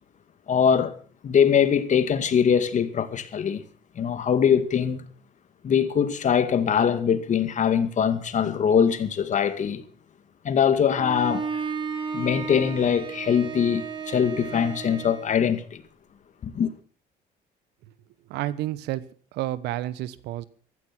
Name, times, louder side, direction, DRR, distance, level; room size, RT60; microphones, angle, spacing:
voice 1, 0.5-0.9 1.2-3.6 4.0-5.0 5.6-9.8 10.4-11.6 12.1-15.8 16.4-16.7, left 7 dB, 45° left, 2.2 m, -22 dB
Bowed string instrument, 10.9-15.3, right 5 dB, 25° right, 3.7 m, -33 dB
voice 2, 18.3-19.0 19.3-20.5, right 15 dB, 85° right, 1.2 m, -30 dB
15.0 x 14.0 x 6.0 m
cardioid pair, 110°, 17 cm